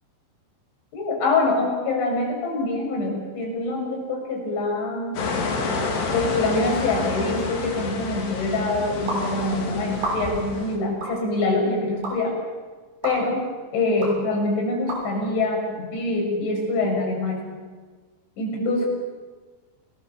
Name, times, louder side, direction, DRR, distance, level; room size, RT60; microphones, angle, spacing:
voice 1, 0.9-5.1 6.1-12.4 13.0-13.4 13.7-17.6 18.4-18.9, left 2 dB, 80° left, -1 dB, 9.1 m, -25 dB
sound 1, 5.2-10.8, left 3 dB, 65° left, 5.3 m, -29 dB
sound 2, 9.1-9.2 9.9-10.5 11.0-11.2 12.0-12.1 13.0-13.2 14.0-14.1 14.9-15.0, right 2 dB, 55° right, 8.3 m, -29 dB
29.5 x 19.5 x 7.1 m, 1.4 s
omnidirectional pair, 5.2 m